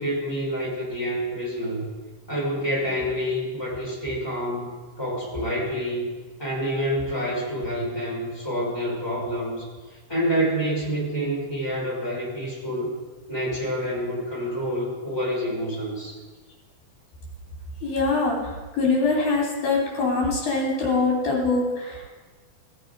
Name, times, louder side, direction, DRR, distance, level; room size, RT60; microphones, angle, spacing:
voice 1, 0.0-1.9 2.3-6.1 6.4-12.9 13.3-16.1, equal, 5° left, -5 dB, 3.4 m, -28 dB
voice 2, 17.8-18.4 18.8-22.1, left 3 dB, 80° left, -2 dB, 4.7 m, -23 dB
15.5 x 7.4 x 5.1 m, 1.4 s
omnidirectional pair, 4.1 m